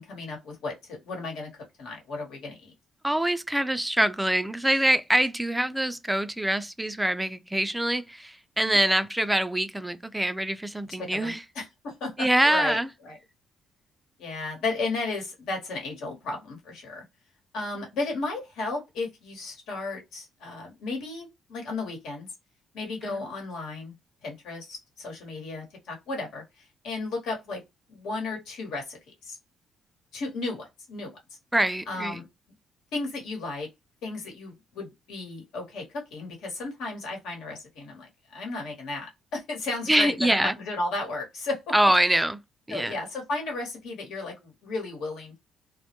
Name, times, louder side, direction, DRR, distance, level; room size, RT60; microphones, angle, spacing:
voice 1, 0.0-1.5 1.8-2.7 8.6-8.8 11.0-13.2 14.2-17.0 17.5-22.3 22.7-23.9 24.2-27.6 27.9-29.4 30.1-31.1 31.9-32.3 32.9-33.7 34.0-35.8 36.1-41.7 42.7-45.4, left 3 dB, 85° left, 1.1 m, -34 dB
voice 2, 3.0-11.4 12.2-12.9 23.0-23.2 31.5-32.2 39.9-40.5 41.7-42.4 42.7-42.9, right 1 dB, 5° right, 0.3 m, -24 dB
2.2 x 2.0 x 2.9 m
cardioid pair, 90°, 0 cm